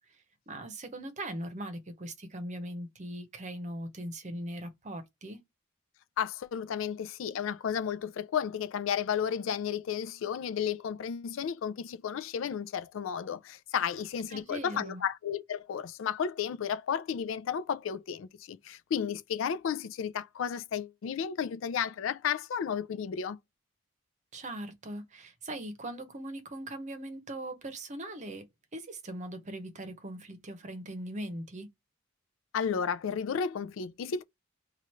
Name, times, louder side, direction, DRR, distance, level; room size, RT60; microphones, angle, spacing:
voice 1, 0.5-5.4 14.3-15.0 24.3-28.5 28.7-31.7, right 1 dB, 35° right, 0.8 m, -40 dB
voice 2, 6.2-23.4 32.5-34.2, left 7 dB, 65° left, 0.4 m, -33 dB
3.0 x 2.4 x 4.3 m
head